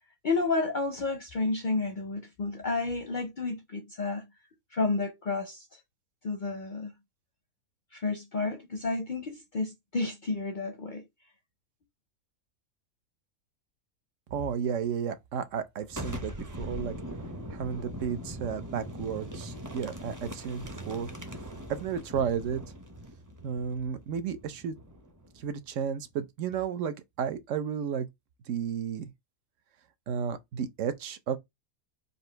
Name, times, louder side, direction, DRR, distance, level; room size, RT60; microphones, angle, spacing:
voice 1, 0.2-4.2 4.7-5.8 6.2-6.9 7.9-11.1, left 3 dB, 50° left, 0.6 m, -31 dB
voice 2, 14.3-17.0 17.5-21.1 21.7-22.6 23.4-24.8 25.4-28.1 28.5-29.1 30.1-31.4, right 7 dB, 70° right, 0.9 m, -33 dB
Boom, 15.9-25.5, equal, 20° right, 0.6 m, -41 dB
4.1 x 2.6 x 4.4 m
omnidirectional pair, 1.4 m